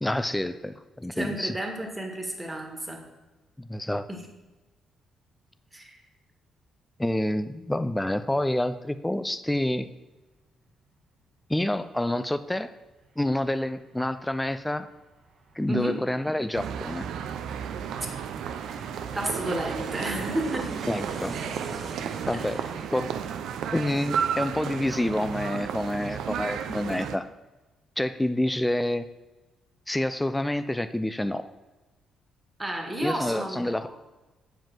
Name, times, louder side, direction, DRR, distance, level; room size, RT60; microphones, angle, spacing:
voice 1, 0.0-1.6 3.6-4.1 7.0-9.9 11.5-12.7 13.2-14.9 15.6-17.1 20.9-21.4 22.3-22.6 22.9-23.1 23.7-27.3 28.0-29.0 29.9-31.5 33.0-33.9, left 1 dB, 10° left, 11 dB, 0.4 m, -28 dB
voice 2, 1.1-3.0 4.1-4.2 5.7-6.0 15.7-16.0 19.1-20.7 22.3-22.7 32.6-33.9, right 1 dB, 15° right, 2 dB, 1.7 m, -32 dB
Aircraft, 12.9-13.0 13.3-24.6 24.9-25.0, right 3 dB, 55° right, 1.2 m, -43 dB
sound 1, 16.5-27.2, right 8 dB, 80° right, 0.5 m, -33 dB
7.4 x 5.1 x 5.9 m, 1.2 s
cardioid pair, 90°, 0 cm